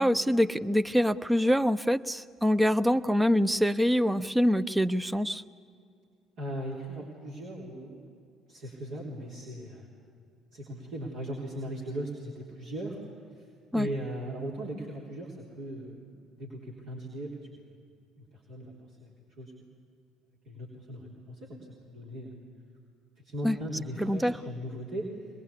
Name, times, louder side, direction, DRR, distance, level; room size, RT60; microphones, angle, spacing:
voice 1, 0.0-5.4 13.7-13.9 23.4-23.6 24.0-24.3, equal, 10° right, 11 dB, 0.8 m, -25 dB
voice 2, 6.4-8.0 8.5-9.9 10.5-13.0 13.3-13.5 13.7-17.8 18.2-19.1 19.4-19.5 20.5-21.6 21.9-22.3 23.2-25.1, right 1 dB, 60° right, -3 dB, 3.7 m, -38 dB
24.5 x 21.0 x 8.5 m, 2.2 s
figure-of-eight pair, 50°, 0 cm